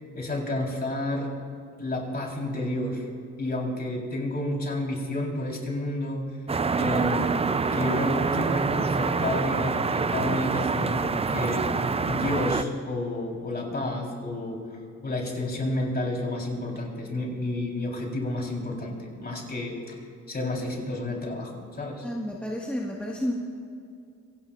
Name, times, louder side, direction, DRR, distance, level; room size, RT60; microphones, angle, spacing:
voice 1, 0.1-1.4 1.8-3.0 3.4-6.3 6.7-7.5 7.7-14.7 15.0-20.0 20.3-22.0, left 1 dB, 30° left, -1 dB, 4.1 m, -30 dB
sound 1, 6.5-12.6, right 4 dB, 20° right, 0.5 m, -26 dB
voice 2, 22.0-23.3, equal, 5° left, -3 dB, 1.7 m, -31 dB
26.5 x 17.0 x 2.6 m, 2.4 s
cardioid pair, 90°, 30 cm